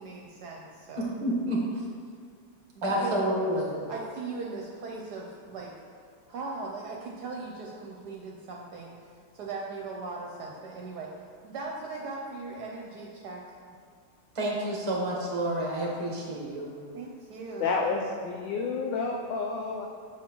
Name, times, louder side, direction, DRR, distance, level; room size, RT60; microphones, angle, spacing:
voice 1, 0.0-1.1 2.8-3.1 3.9-5.7 6.3-9.0 9.3-11.1 11.4-13.4 16.9-17.8, right 3 dB, 70° right, -1 dB, 1.1 m, -39 dB
voice 2, 1.0-1.9 2.8-3.8 14.3-16.8, right 1 dB, 20° right, -3 dB, 0.9 m, -29 dB
voice 3, 17.6-19.9, left 4 dB, 85° left, 0 dB, 1.3 m, -30 dB
7.4 x 5.8 x 3.0 m, 2.2 s
omnidirectional pair, 2.0 m